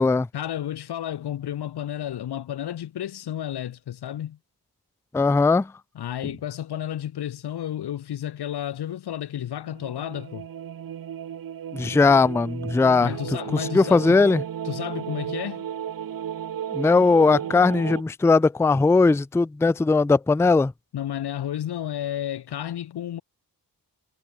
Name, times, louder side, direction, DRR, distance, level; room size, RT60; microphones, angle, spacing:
voice 1, 0.3-4.4 5.9-10.5 13.0-14.2 14.6-15.7 20.9-23.2, left 11 dB, 80° left, 1.0 m, -32 dB
voice 2, 5.1-5.7 11.7-13.1 13.5-14.4 16.7-20.7, left 3 dB, 5° left, 0.4 m, -19 dB
sound 1, 9.7-18.0, right 9 dB, 60° right, 0.9 m, -34 dB
cardioid pair, 55°, 39 cm